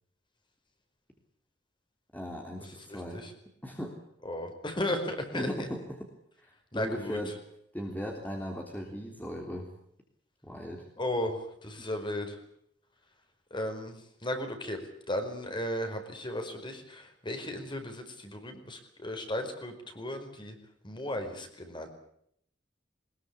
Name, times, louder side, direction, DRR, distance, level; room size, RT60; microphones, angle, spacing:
voice 1, 2.1-3.2 3.6-3.9 5.3-6.0 6.4-7.4 7.7-9.7 10.4-10.8 11.8-11.9, equal, 10° left, 1 dB, 3.3 m, -37 dB
voice 2, 2.9-3.3 4.2-5.7 6.7-7.2 11.0-12.4 13.5-14.8 15.1-20.6 20.8-21.9, left 1 dB, 25° left, 6 dB, 4.9 m, -35 dB
22.5 x 21.0 x 8.4 m, 0.70 s
head